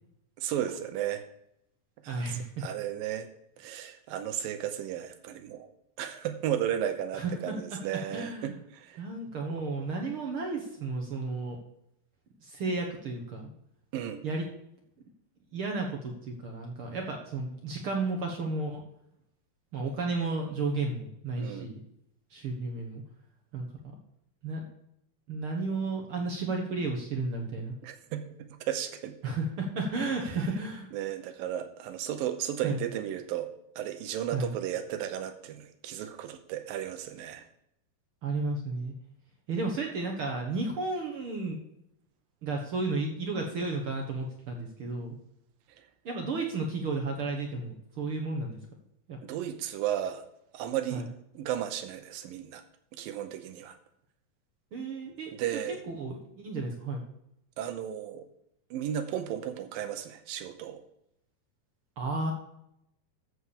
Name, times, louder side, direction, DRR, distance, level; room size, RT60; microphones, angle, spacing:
voice 1, 0.4-1.2 2.0-3.3 3.6-5.7 6.0-9.0 13.9-14.2 21.4-21.7 27.8-29.1 30.3-30.4 30.9-33.5 33.8-37.4 49.2-50.3 50.5-51.0 51.3-52.6 52.9-53.8 55.3-55.8 57.6-58.3 58.7-60.8, right 10 dB, 85° right, 8 dB, 2.5 m, -34 dB
voice 2, 2.1-2.5 7.1-7.5 8.1-8.6 9.0-11.6 12.4-13.5 14.2-14.5 15.5-18.8 19.7-21.8 22.3-23.0 23.5-23.7 24.4-24.6 25.3-27.7 29.2-30.9 32.6-32.8 34.3-34.5 38.2-38.9 39.5-41.6 42.4-45.1 46.0-48.6 49.1-49.2 50.9-51.0 54.7-55.6 55.9-57.0 62.0-62.3, right 3 dB, 60° right, 1 dB, 1.5 m, -33 dB
14.0 x 4.8 x 7.0 m, 0.78 s
omnidirectional pair, 4.0 m